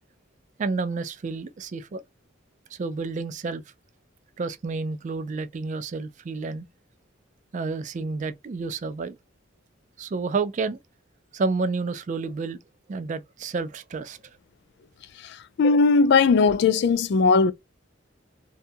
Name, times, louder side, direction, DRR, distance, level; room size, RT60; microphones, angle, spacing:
voice 1, 0.6-2.0 2.7-3.6 4.4-6.7 7.5-9.2 10.0-10.8 11.3-12.6 12.9-14.2, right 4 dB, 40° right, 0.3 m, -30 dB
voice 2, 15.6-17.5, left 4 dB, 60° left, 0.3 m, -18 dB
2.8 x 2.3 x 2.5 m
head